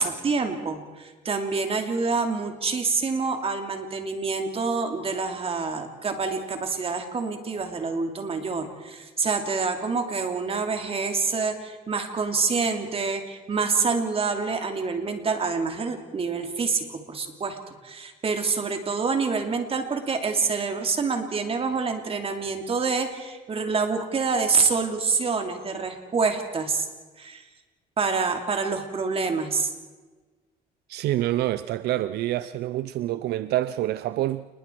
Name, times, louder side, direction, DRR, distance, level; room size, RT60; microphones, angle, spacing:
voice 1, 0.0-17.6 17.8-26.9 27.2-27.4 28.0-29.7, right 4 dB, 35° right, 2.8 m, -27 dB
voice 2, 30.9-34.5, right 14 dB, 75° right, 0.5 m, -27 dB
28.5 x 20.5 x 4.6 m
cardioid pair, 110°, 17 cm